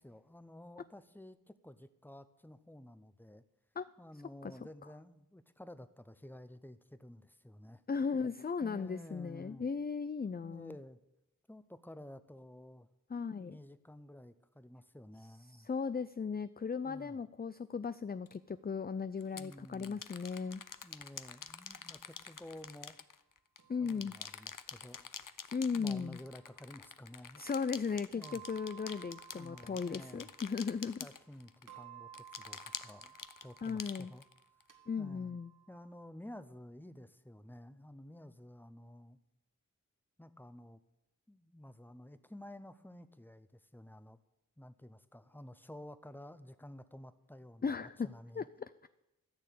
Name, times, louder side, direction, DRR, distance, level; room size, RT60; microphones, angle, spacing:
voice 1, 0.0-3.4 4.0-7.8 8.6-9.7 10.4-11.0 11.5-12.9 13.3-15.7 16.8-17.2 19.3-20.0 20.8-23.0 23.8-25.1 25.7-27.4 28.1-28.4 29.3-30.3 31.0-33.2 33.4-34.3 35.0-35.4 35.7-39.2 40.2-40.8 41.3-44.2 44.6-48.5, left 1 dB, 5° left, 12 dB, 0.8 m, -52 dB
voice 2, 7.9-10.7 13.1-13.6 15.6-20.6 23.7-24.1 25.5-26.2 27.4-31.0 33.6-34.1 34.9-35.5 47.6-48.1 48.4-48.5, left 5 dB, 30° left, 13 dB, 0.4 m, -36 dB
sound 1, 18.3-18.4 19.2-23.6 23.9-31.7 32.1-34.6, left 7 dB, 70° left, 0.7 m, -47 dB
sound 2, 20.3-22.4 23.6-24.6 25.8-27.0 28.2-31.3 31.7-36.1, right 10 dB, 65° right, 1.7 m, -58 dB
14.0 x 6.7 x 8.4 m, 0.91 s
wide cardioid pair, 50°, 33 cm